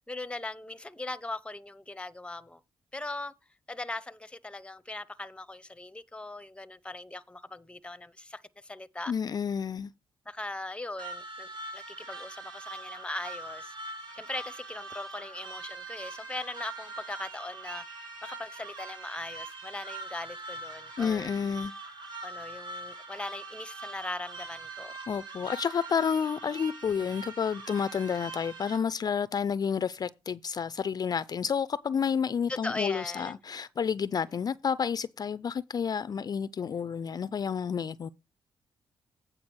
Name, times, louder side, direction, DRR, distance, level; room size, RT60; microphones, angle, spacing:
voice 1, 0.1-2.6 2.9-3.3 3.7-9.1 10.3-11.5 11.7-13.7 14.1-21.3 22.2-24.9 32.5-33.4, left 2 dB, 10° left, 0.7 m, -39 dB
voice 2, 9.1-9.9 21.0-21.7 25.1-38.1, left 7 dB, 45° left, 0.4 m, -30 dB
sound 1, 11.0-28.8, right 3 dB, 50° right, 4.0 m, -42 dB
8.7 x 4.9 x 6.1 m
cardioid pair, 75°, 9 cm